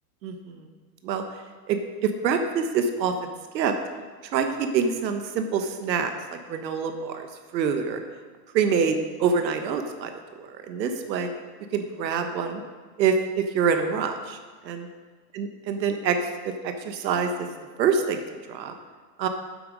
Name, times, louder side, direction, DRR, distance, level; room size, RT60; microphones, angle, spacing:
voice 1, 0.2-0.7 1.0-1.2 1.7-3.1 3.5-3.7 4.3-7.3 7.5-8.0 8.5-10.1 10.4-11.3 11.7-12.6 13.0-14.4 14.6-14.9 15.3-16.2 16.4-17.5 17.8-18.2 18.5-18.7 19.2-19.3, right 6 dB, 90° right, 7 dB, 1.2 m, -26 dB
8.3 x 7.9 x 5.2 m, 1.5 s
supercardioid pair, 135°, 50 cm